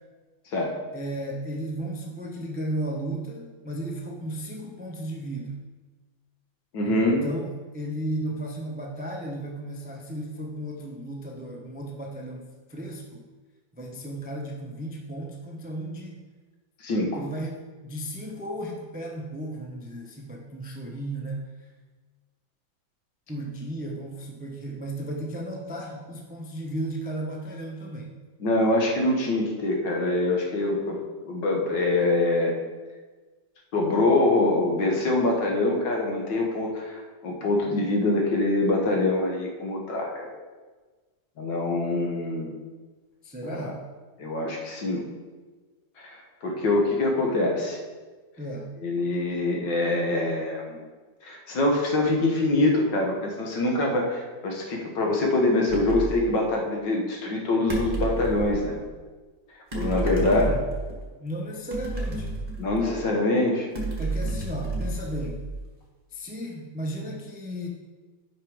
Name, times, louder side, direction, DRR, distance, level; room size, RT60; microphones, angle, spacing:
voice 1, 0.9-5.6 6.8-7.0 7.2-13.3 13.7-16.1 17.1-21.4 23.3-28.1 43.2-43.8 48.4-48.7 60.0-60.6 61.2-62.3 64.0-65.5 66.1-67.7, right 1 dB, 10° right, -1 dB, 0.5 m, -34 dB
voice 2, 6.7-7.2 16.8-17.2 28.4-31.0 31.2-32.6 33.7-40.3 41.4-42.5 43.4-43.7 44.2-45.0 46.0-46.2 46.4-47.8 48.8-50.8 51.2-58.8 59.7-60.5 62.6-63.7, left 2 dB, 70° left, 0 dB, 2.0 m, -24 dB
sound 1, 55.7-56.2 57.7-58.6 59.7-61.0 61.7-63.1 63.7-65.7, right 2 dB, 30° right, 1.7 m, -30 dB
9.2 x 5.7 x 5.0 m, 1.3 s
omnidirectional pair, 2.1 m